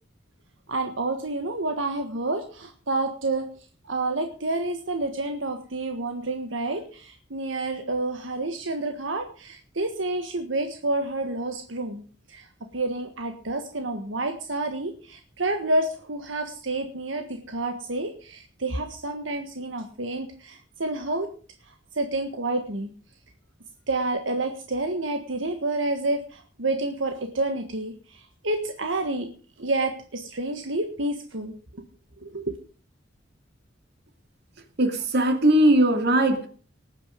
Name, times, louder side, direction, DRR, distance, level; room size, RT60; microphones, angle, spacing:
voice 1, 0.7-3.4 3.8-12.0 12.3-12.5 12.7-21.3 22.0-22.9 23.9-29.3 29.6-31.5 32.2-32.5, right 2 dB, 80° right, 1.6 m, -29 dB
voice 2, 34.8-36.5, right 1 dB, 60° right, 2.6 m, -19 dB
19.5 x 9.1 x 5.2 m
head